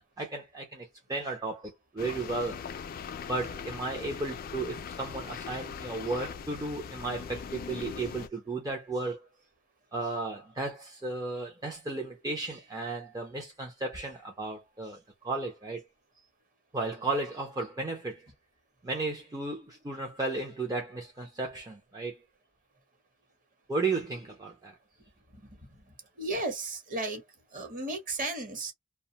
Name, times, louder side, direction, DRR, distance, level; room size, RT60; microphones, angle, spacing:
voice 1, 0.0-2.6 3.2-9.3 9.9-15.8 16.7-18.3 18.8-22.2 23.7-24.8, right 3 dB, 15° right, 0.5 m, -34 dB
sound 1, 2.0-8.3, left 6 dB, 40° left, 0.3 m, -40 dB
voice 2, 25.3-27.2 27.5-28.7, right 2 dB, 40° right, 1.0 m, -35 dB
2.4 x 2.2 x 2.8 m
head